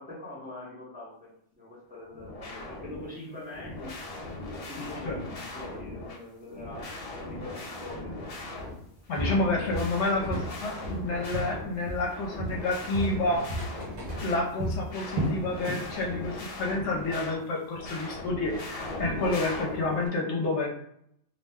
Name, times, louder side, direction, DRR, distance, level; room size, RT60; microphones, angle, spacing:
voice 1, 0.0-4.0 4.5-8.3, left 1 dB, 10° right, -7 dB, 0.7 m, -43 dB
sound 1, 2.1-3.1 3.5-6.2 6.5-8.8 9.1-14.5 14.8-17.4 17.7-20.1, left 2 dB, 45° left, 0.5 m, -39 dB
Walk footsteps, 8.6-8.8 9.2-10.5 10.8-12.1 12.4-15.9 16.2-16.5 16.9-17.0, equal, 50° right, 0.5 m, -33 dB
voice 2, 9.1-13.4 14.2-20.7, left 2 dB, 70° left, -1 dB, 0.9 m, -29 dB
2.6 x 2.1 x 3.4 m, 0.70 s
omnidirectional pair, 1.3 m